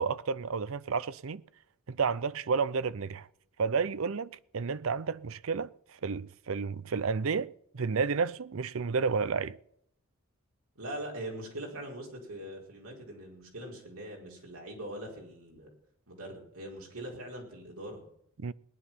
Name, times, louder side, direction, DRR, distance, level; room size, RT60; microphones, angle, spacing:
voice 1, 0.0-1.4 1.9-3.3 3.6-5.7 6.0-9.6 18.4-18.5, right 5 dB, 70° right, 0.6 m, -31 dB
voice 2, 10.7-15.7 16.1-18.0, right 1 dB, 85° right, 5.0 m, -42 dB
19.0 x 10.0 x 5.7 m
head